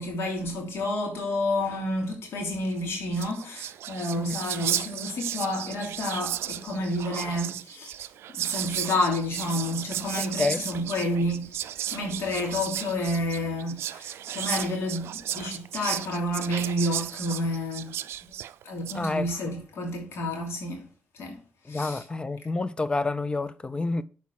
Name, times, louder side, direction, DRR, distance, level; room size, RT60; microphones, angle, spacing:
voice 1, 0.0-7.9 8.3-18.0 18.6-20.9 21.1-21.4 21.7-22.0, left 1 dB, 75° left, 2.8 m, -30 dB
Whispering, 2.8-2.9 3.1-19.0, right 12 dB, 90° right, 0.4 m, -34 dB
voice 2, 10.2-10.6 18.9-19.3 21.7-24.0, left 3 dB, 25° left, 0.4 m, -29 dB
7.3 x 4.6 x 5.8 m
cardioid pair, 90°, 4 cm